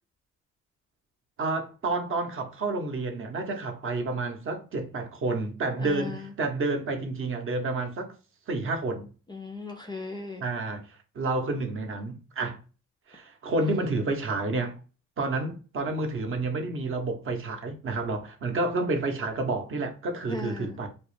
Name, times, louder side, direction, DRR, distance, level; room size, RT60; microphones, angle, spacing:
voice 1, 1.4-8.1 8.5-9.1 10.4-10.8 11.2-12.6 13.1-14.8 15.2-20.9, right 3 dB, 45° right, 0.6 m, -30 dB
voice 2, 5.8-6.2 9.3-10.4 20.3-20.7, left 3 dB, 15° left, 0.3 m, -36 dB
2.3 x 2.0 x 3.0 m
cardioid pair, 90°, 30 cm